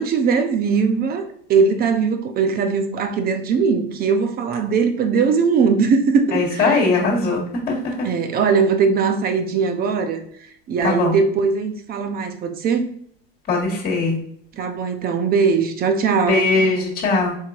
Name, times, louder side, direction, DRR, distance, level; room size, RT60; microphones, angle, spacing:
voice 1, 0.0-6.8 8.0-10.2 10.7-12.9 14.5-16.4, right 5 dB, 30° right, 0.7 m, -20 dB
voice 2, 6.3-7.8 10.8-11.1 13.5-14.2 16.3-17.3, left 3 dB, 30° left, 1.7 m, -20 dB
4.5 x 3.7 x 2.4 m
supercardioid pair, 110°, 29 cm